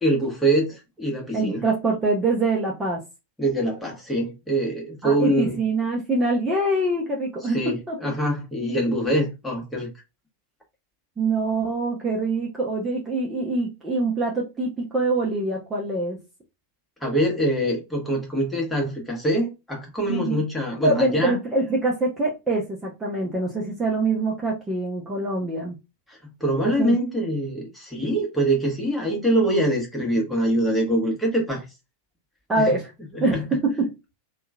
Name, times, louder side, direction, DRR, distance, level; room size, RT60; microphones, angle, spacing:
voice 1, 0.0-1.6 3.4-5.6 7.5-9.9 17.0-21.4 26.1-31.6 32.6-32.7 33.1-33.5, right 1 dB, 5° left, 1.2 m, -24 dB
voice 2, 1.3-3.0 5.0-7.6 7.9-8.0 11.2-16.2 20.1-20.4 20.8-25.8 26.6-27.0 32.5-32.9 33.2-33.4 33.6-33.9, right 2 dB, 15° right, 0.8 m, -24 dB
2.9 x 2.3 x 2.4 m
figure-of-eight pair, 90°, 0 cm